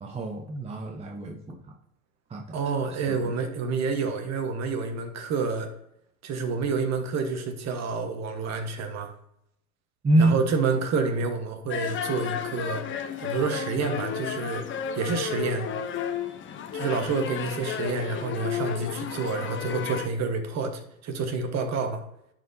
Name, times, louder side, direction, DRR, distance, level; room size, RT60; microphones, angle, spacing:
voice 1, 0.0-1.6 2.3-2.4 3.1-3.2 10.0-10.4, right 1 dB, 15° right, 1 dB, 0.8 m, -25 dB
voice 2, 2.5-5.7 6.2-9.1 10.2-12.8 13.2-14.6 14.9-15.7 16.7-22.0, right 4 dB, 35° right, 6 dB, 1.3 m, -28 dB
sound 1, 11.7-20.1, left 8 dB, 25° left, 0.7 m, -33 dB
10.5 x 4.4 x 2.7 m, 0.76 s
hypercardioid pair, 95°, 45 cm